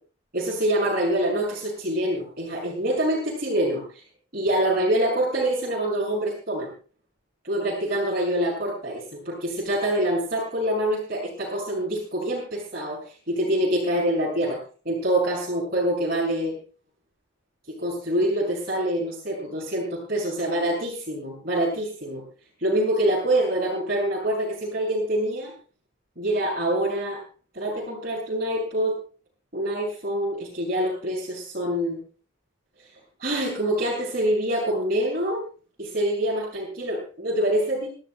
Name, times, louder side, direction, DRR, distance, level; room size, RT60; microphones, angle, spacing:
voice 1, 0.3-4.0 4.3-6.7 7.4-14.6 14.8-16.5 17.7-22.2 22.6-25.5 26.2-27.2 27.5-29.0 29.5-32.0 32.8-32.9 33.2-35.4 35.8-37.9, right 1 dB, 50° right, -6 dB, 6.9 m, -25 dB
26.0 x 15.5 x 2.3 m, 0.38 s
head